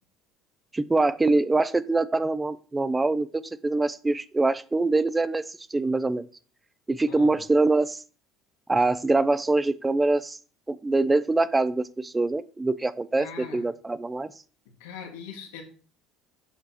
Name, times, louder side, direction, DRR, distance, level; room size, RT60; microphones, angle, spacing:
voice 1, 0.7-6.3 6.9-8.0 8.7-10.4 10.7-13.3 13.5-14.3, right 2 dB, 15° right, 16 dB, 0.5 m, -24 dB
voice 2, 7.1-7.4 13.2-13.7 14.8-15.6, left 6 dB, 85° left, 2 dB, 1.9 m, -41 dB
8.2 x 6.0 x 2.9 m, 0.39 s
supercardioid pair, 90°, 0 cm